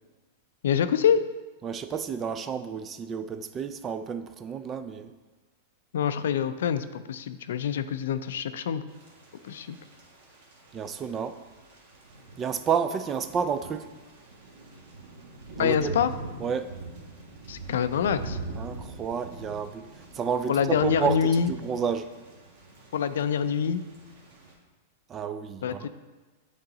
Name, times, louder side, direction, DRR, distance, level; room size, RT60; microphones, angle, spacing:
voice 1, 0.6-1.2 5.9-8.8 9.4-9.8 15.6-16.1 17.5-18.4 20.5-21.5 22.9-23.8 25.6-25.9, left 7 dB, 80° left, 12 dB, 0.4 m, -25 dB
voice 2, 1.6-5.1 10.7-11.4 12.4-13.9 15.6-16.0 16.4-16.8 18.6-22.2 25.1-25.9, right 6 dB, 20° right, 10 dB, 0.3 m, -31 dB
Thunder / Rain, 8.9-24.5, right 3 dB, 60° right, 1.5 m, -43 dB
8.6 x 3.8 x 3.8 m, 1.2 s
supercardioid pair, 150°, 0 cm